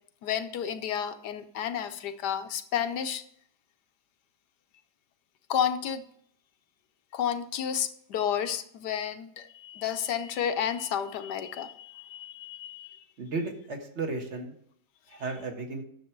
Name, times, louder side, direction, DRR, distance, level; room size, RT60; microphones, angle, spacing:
voice 1, 0.2-3.2 5.5-6.0 7.1-13.0, left 8 dB, 90° left, 10 dB, 1.4 m, -31 dB
voice 2, 13.2-14.5 15.1-15.8, right 3 dB, 45° right, 3 dB, 1.7 m, -34 dB
10.0 x 7.3 x 4.6 m, 0.69 s
omnidirectional pair, 1.7 m